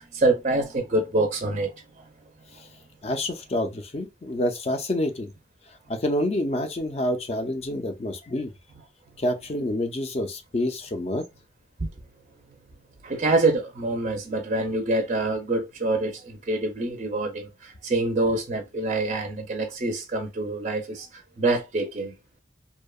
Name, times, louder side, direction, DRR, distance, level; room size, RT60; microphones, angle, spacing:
voice 1, 0.0-1.7 2.0-2.1 13.0-22.1, right 2 dB, 40° right, 0.4 m, -26 dB
voice 2, 3.0-5.3 5.9-8.5 9.2-11.3, left 1 dB, 35° left, 0.4 m, -27 dB
2.7 x 2.1 x 2.3 m
head